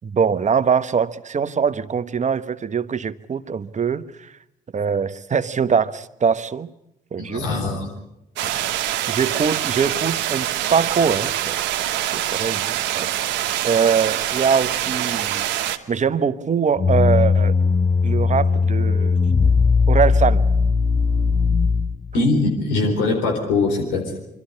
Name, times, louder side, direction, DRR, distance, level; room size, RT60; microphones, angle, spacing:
voice 1, 0.0-4.3 4.7-6.7 7.1-7.4 9.1-11.6 12.1-13.1 13.6-15.5 15.9-17.5 18.0-19.2 19.9-20.4, right 6 dB, 40° right, 12 dB, 1.1 m, -22 dB
voice 2, 7.2-7.9 22.1-24.2, left 3 dB, 85° left, 2 dB, 4.1 m, -21 dB
sound 1, 8.4-15.8, right 12 dB, 75° right, 1.2 m, -25 dB
sound 2, 16.8-22.2, left 4 dB, 35° left, 0.8 m, -18 dB
25.0 x 13.5 x 9.6 m, 0.84 s
hypercardioid pair, 55°, 19 cm